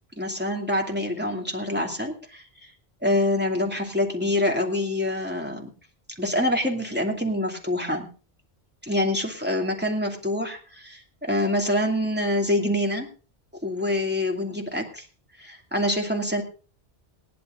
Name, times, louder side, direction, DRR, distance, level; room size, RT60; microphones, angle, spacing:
voice 1, 0.2-2.4 3.0-5.7 6.2-8.1 8.8-13.1 13.6-15.0 15.4-16.4, left 1 dB, 10° right, 1 dB, 2.5 m, -26 dB
18.0 x 11.0 x 3.8 m, 0.36 s
omnidirectional pair, 1.1 m